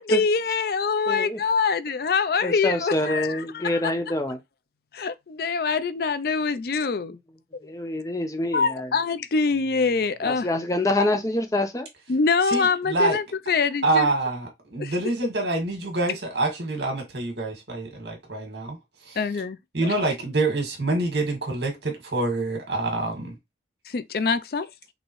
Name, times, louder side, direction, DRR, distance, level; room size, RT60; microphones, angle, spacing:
voice 1, 0.0-3.8 4.9-7.2 7.5-7.6 8.5-10.5 12.1-14.1 14.8-15.0 19.2-19.6 23.9-24.7, left 5 dB, 55° left, 0.4 m, -24 dB
voice 2, 1.1-1.4 2.4-4.4 7.1-7.2 7.6-8.9 10.2-11.9, left 1 dB, 20° left, 0.6 m, -26 dB
voice 3, 12.5-13.2 13.8-18.8 19.0-19.2 19.7-23.3, right 2 dB, 75° right, 2.0 m, -26 dB
5.4 x 3.0 x 3.1 m
head